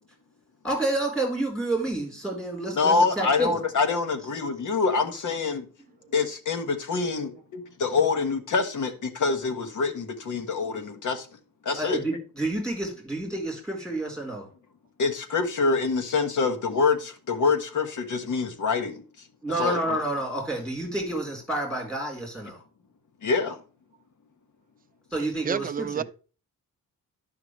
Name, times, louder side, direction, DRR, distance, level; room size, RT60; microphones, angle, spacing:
voice 1, 0.6-3.5 11.8-14.5 19.4-22.6 25.1-26.0, right 2 dB, ahead, 4.2 m, -29 dB
voice 2, 2.7-5.7 6.1-11.3 11.6-12.0 15.0-19.0 19.6-20.0 23.2-23.6, left 4 dB, 55° left, 1.4 m, -25 dB
voice 3, 25.4-26.0, right 7 dB, 25° right, 0.4 m, -28 dB
11.0 x 5.8 x 3.2 m
wide cardioid pair, 140°, 36 cm